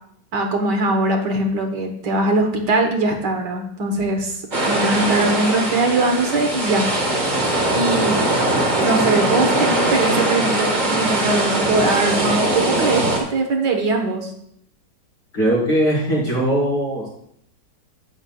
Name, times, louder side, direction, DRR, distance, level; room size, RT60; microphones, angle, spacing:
voice 1, 0.3-4.4 4.6-6.9 7.7-8.2 8.8-14.3, right 2 dB, 70° right, 4 dB, 1.8 m, -21 dB
sound 1, 4.5-13.2, right 1 dB, 25° right, 1.5 m, -21 dB
voice 2, 15.3-17.1, right 1 dB, 60° left, -6 dB, 4.6 m, -20 dB
11.5 x 9.3 x 2.3 m, 0.69 s
omnidirectional pair, 1.9 m